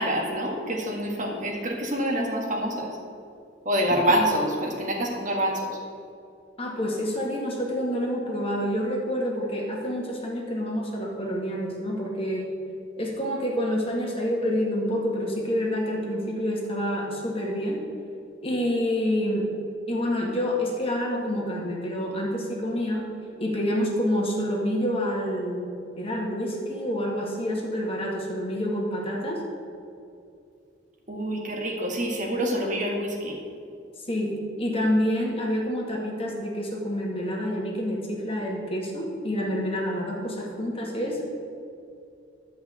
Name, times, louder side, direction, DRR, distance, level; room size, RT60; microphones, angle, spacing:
voice 1, 0.0-2.9 3.7-5.7 31.1-33.4, equal, 45° right, 0 dB, 1.7 m, -26 dB
voice 2, 6.6-12.5 13.0-17.8 18.4-19.5 19.9-23.1 23.4-25.7 26.0-29.4 34.0-41.3, equal, 30° left, -2 dB, 2.0 m, -28 dB
11.0 x 5.6 x 8.1 m, 2.5 s
head